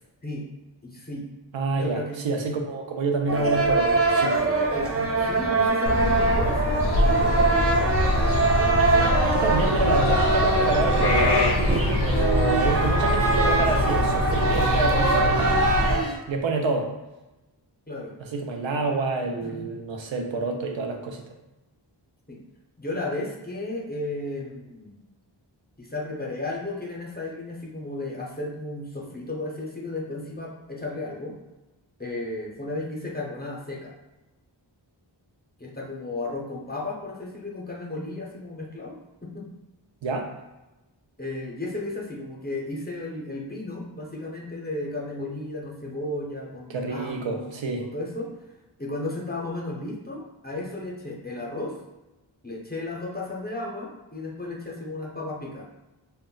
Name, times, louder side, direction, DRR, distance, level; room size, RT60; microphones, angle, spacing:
voice 1, 0.8-1.3 1.8-2.2 4.7-7.4 17.9-18.2 19.4-19.7 22.3-22.4 22.8-25.0 25.8-31.4 32.0-33.9 35.6-39.5 41.2-48.3 48.8-51.8 52.4-55.7, left 2 dB, 20° left, -3 dB, 0.6 m, -34 dB
voice 2, 1.5-4.4 9.3-11.4 12.0-15.6 16.3-17.0 18.2-21.2 40.0-40.3 46.7-47.9, right 3 dB, 80° right, 3 dB, 0.6 m, -27 dB
sound 1, 3.3-16.0, right 3 dB, 35° right, 0.4 m, -23 dB
sound 2, 5.9-15.9, left 2 dB, 60° left, 0.5 m, -24 dB
sound 3, 7.0-16.2, right 2 dB, 60° right, 0.8 m, -31 dB
2.2 x 2.0 x 3.7 m, 1.0 s
wide cardioid pair, 45°, 45 cm